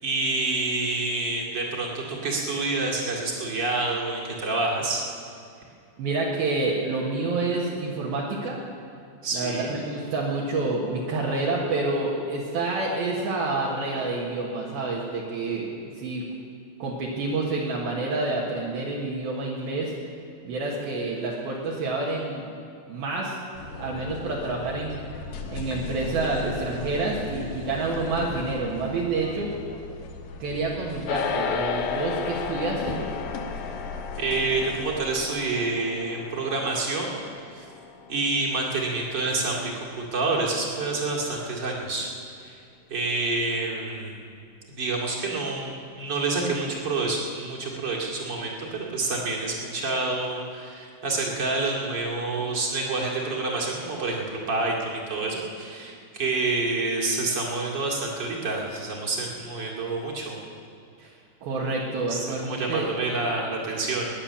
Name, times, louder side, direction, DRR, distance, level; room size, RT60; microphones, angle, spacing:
voice 1, 0.0-5.0 9.2-9.7 34.2-37.2 37.5-37.6 38.1-42.1 42.4-42.6 42.9-44.2 44.7-60.4 62.1-64.1, right 3 dB, 35° right, -3 dB, 2.1 m, -28 dB
voice 2, 6.0-8.6 9.3-15.7 16.0-16.2 16.8-19.9 20.4-22.5 22.9-23.4 23.7-25.0 25.5-29.5 30.4-33.0 61.0-61.2 61.4-62.9, right 3 dB, 65° right, -4 dB, 3.1 m, -28 dB
sound 1, 23.5-35.5, left 3 dB, 65° left, 2.3 m, -38 dB
sound 2, 31.1-40.6, left 6 dB, 80° left, 3.3 m, -34 dB
20.5 x 9.8 x 7.0 m, 2.4 s
omnidirectional pair, 5.0 m